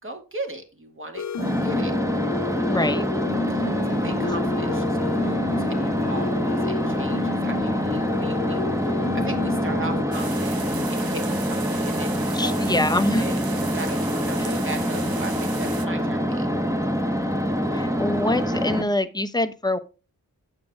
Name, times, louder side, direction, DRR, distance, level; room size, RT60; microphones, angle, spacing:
voice 1, 0.0-1.9 2.6-2.9 3.5-16.5, right 2 dB, 35° right, 5 dB, 2.4 m, -38 dB
sound 1, 1.1-10.0, left 6 dB, 45° left, 0.7 m, -31 dB
sound 2, 1.4-18.8, equal, 10° right, 1.4 m, -25 dB
voice 2, 2.6-3.0 12.3-13.2 14.4-14.5 17.7-19.8, left 1 dB, 10° left, 10 dB, 1.0 m, -24 dB
sound 3, 10.1-15.9, right 6 dB, 70° right, 1.1 m, -37 dB
8.5 x 7.5 x 3.7 m, 0.31 s
cardioid pair, 60°, 37 cm